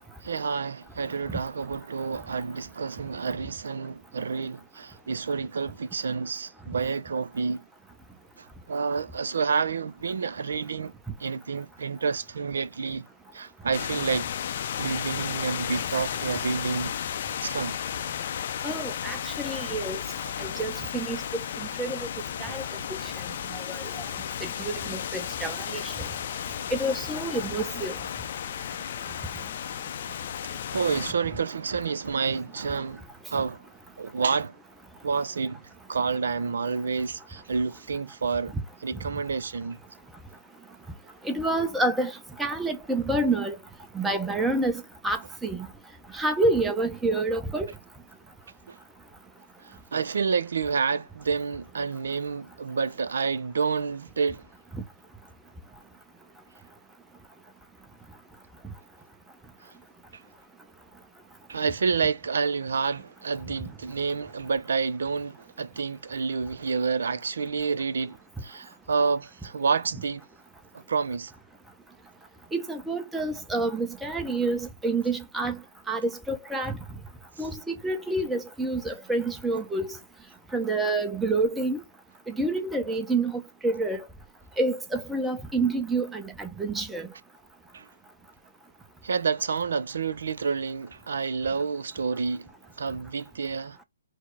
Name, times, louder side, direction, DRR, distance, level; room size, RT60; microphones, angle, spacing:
voice 1, 0.2-7.6 8.4-10.9 11.2-13.1 13.3-14.3 14.7-17.1 17.4-17.8 20.2-20.3 30.4-33.0 33.3-33.6 34.0-34.6 35.0-35.6 35.9-38.5 38.8-39.8 48.7-48.8 49.6-54.4 59.6-59.7 60.1-60.2 61.5-70.2 70.7-71.3 77.4-77.5 87.7-87.9 89.0-92.5 92.8-93.8, right 5 dB, 70° right, 0.4 m, -29 dB
sound 1, 13.7-31.1, left 9 dB, 50° left, 0.4 m, -34 dB
voice 2, 18.6-20.0 20.4-21.2 21.8-22.0 22.4-22.6 22.9-23.0 23.5-23.8 24.4-25.9 26.7-27.9 41.2-42.1 42.4-43.6 43.9-45.7 46.1-47.7 54.7-54.8 72.5-75.6 75.9-76.7 77.4-79.9 80.5-81.8 82.3-84.0 84.6-87.1, right 2 dB, 5° right, 0.7 m, -28 dB
4.6 x 2.0 x 4.4 m
hypercardioid pair, 140°, 0 cm